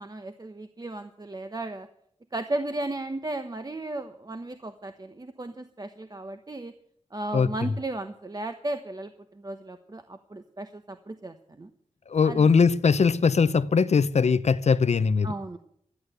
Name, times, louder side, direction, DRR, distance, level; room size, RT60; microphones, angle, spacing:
voice 1, 0.0-1.9 2.3-6.7 7.1-11.7 12.2-12.5 15.2-15.6, right 2 dB, 35° right, 1.0 m, -35 dB
voice 2, 12.1-15.3, left 5 dB, 70° left, 0.6 m, -21 dB
13.0 x 11.5 x 7.9 m
wide cardioid pair, 100°, 12 cm